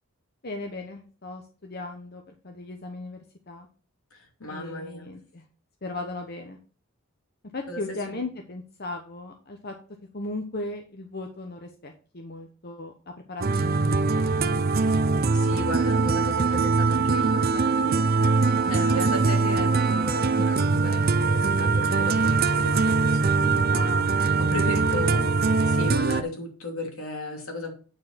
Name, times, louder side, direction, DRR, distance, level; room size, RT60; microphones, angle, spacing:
voice 1, 0.4-3.2 3.5-3.7 4.5-5.4 5.8-6.6 7.5-9.7 10.1-15.2 20.4-20.5 24.9-25.3, left 2 dB, 45° left, 4 dB, 1.0 m, -37 dB
voice 2, 4.1-5.1 7.7-8.2 15.3-18.4 18.6-25.3 25.6-27.7, left 1 dB, 80° left, 1 dB, 2.7 m, -35 dB
sound 1, 13.4-26.2, right 4 dB, 45° right, 0.6 m, -22 dB
8.9 x 4.7 x 5.7 m, 0.40 s
head